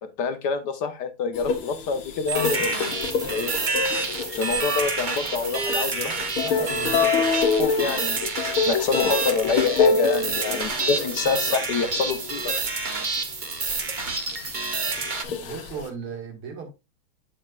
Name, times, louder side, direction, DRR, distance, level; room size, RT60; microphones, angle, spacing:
voice 1, 0.0-2.7 3.2-3.5 4.3-6.1 7.6-12.5, left 5 dB, 60° left, 1.3 m, -26 dB
sound 1, 1.3-12.7 13.2-13.3 13.7-15.9, left 5 dB, 80° left, 2.1 m, -27 dB
sound 2, 2.3-15.2, right 4 dB, 45° right, 0.6 m, -28 dB
voice 2, 5.9-7.1 15.4-16.7, right 5 dB, 90° right, 2.8 m, -37 dB
7.8 x 7.5 x 2.4 m
omnidirectional pair, 2.3 m